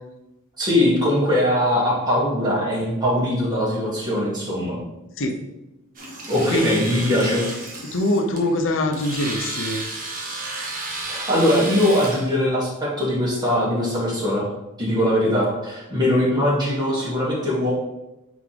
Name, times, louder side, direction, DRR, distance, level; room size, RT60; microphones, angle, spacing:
voice 1, 0.6-4.8 6.3-7.4 11.1-14.5 14.8-17.7, left 1 dB, 20° right, -7 dB, 2.3 m, -21 dB
Domestic sounds home sounds, 5.9-12.3, right 2 dB, 40° right, 1.2 m, -32 dB
voice 2, 7.9-9.8, left 1 dB, 60° left, 4 dB, 0.8 m, -23 dB
8.8 x 3.6 x 3.4 m, 0.94 s
head